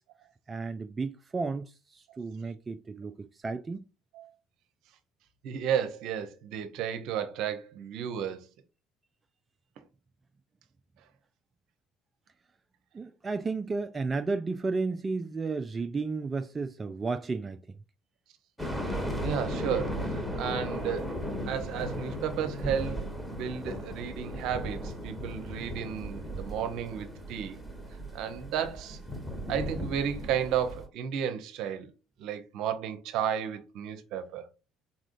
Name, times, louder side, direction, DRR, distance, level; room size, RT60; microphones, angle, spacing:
voice 1, 0.5-3.8 12.9-17.6, right 4 dB, 30° right, 0.3 m, -33 dB
voice 2, 5.4-8.5 19.2-21.1 21.4-27.6 28.1-29.0 29.5-31.9 32.2-34.5, right 8 dB, 65° right, 0.7 m, -33 dB
sound 1, 18.6-30.9, equal, 5° left, 1.4 m, -36 dB
4.1 x 3.6 x 2.5 m
hypercardioid pair, 65°, 0 cm